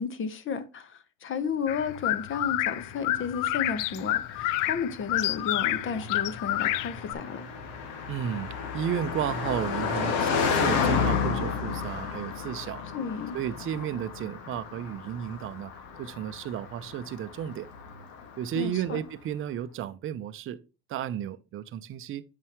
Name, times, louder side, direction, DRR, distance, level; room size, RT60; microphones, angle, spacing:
voice 1, 0.0-7.4 12.9-13.4 18.5-19.0, left 6 dB, 35° left, 1.1 m, -33 dB
sound 1, 1.7-7.1, left 15 dB, 60° left, 0.6 m, -29 dB
Car passing by, 2.3-18.8, left 6 dB, 80° left, 1.8 m, -32 dB
voice 2, 8.1-12.8 13.3-15.7 16.0-17.7 18.4-20.6 20.9-22.2, right 10 dB, 35° right, 0.6 m, -33 dB
8.3 x 5.5 x 3.0 m
supercardioid pair, 120°, 37 cm